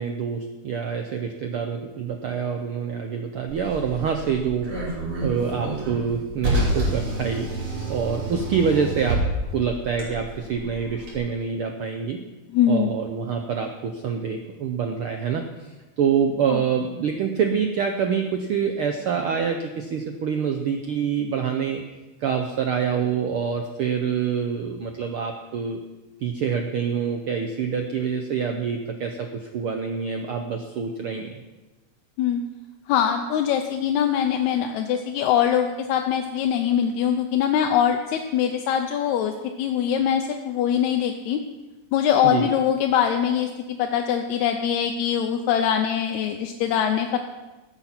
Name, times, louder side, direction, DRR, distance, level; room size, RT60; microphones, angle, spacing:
voice 1, 0.0-7.5 7.9-9.2 9.5-12.2 12.7-21.8 22.2-25.8 26.2-31.4 42.2-42.5, right 6 dB, 80° right, 5 dB, 1.2 m, -26 dB
Car, 3.5-11.2, right 1 dB, 50° right, 3.9 m, -29 dB
voice 2, 12.5-13.0 16.5-16.6 32.2-32.4 32.9-39.3 39.6-41.4 41.9-47.2, left 9 dB, 80° left, 4 dB, 2.0 m, -23 dB
14.0 x 8.5 x 5.9 m, 1.1 s
omnidirectional pair, 3.5 m